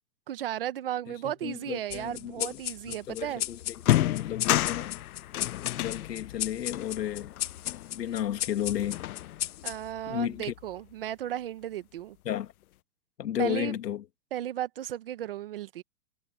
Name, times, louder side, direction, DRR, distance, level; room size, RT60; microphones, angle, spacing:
voice 1, 0.3-3.4 9.6-12.2 13.4-13.7 14.3-15.8, right 12 dB, 35° right, 1.1 m, -35 dB
voice 2, 1.2-5.0 5.7-7.3 7.9-9.0 10.1-10.5 12.2-12.5 13.2-14.0, left 11 dB, 85° left, 2.4 m, -33 dB
sound 1, 1.9-10.8, left 13 dB, 50° left, 2.1 m, -37 dB
sound 2, 3.2-3.3 3.7-8.3 8.7-9.6, left 14 dB, 65° left, 0.5 m, -31 dB
hypercardioid pair, 175°, 48 cm